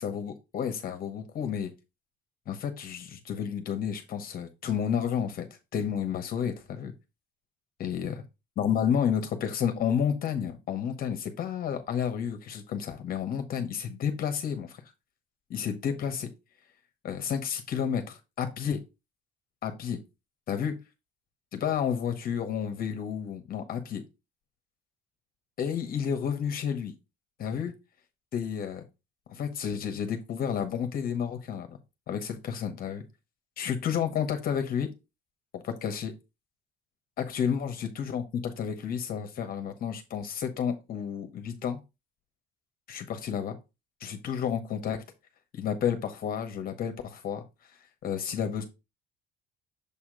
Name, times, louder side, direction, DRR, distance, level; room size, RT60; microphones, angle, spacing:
voice 1, 0.0-1.7 2.5-5.5 5.7-6.9 7.8-8.1 8.6-14.8 15.5-16.3 17.0-18.8 19.6-20.0 20.5-20.8 21.5-24.0 25.6-26.9 27.4-27.7 28.3-28.8 29.3-31.8 32.1-33.0 33.6-34.9 35.5-36.1 37.2-41.8 42.9-43.6 44.0-45.0 45.5-47.4 48.0-48.6, left 8 dB, 45° left, 1.0 m, -31 dB
7.0 x 2.9 x 4.9 m
cardioid pair, 150°, 21 cm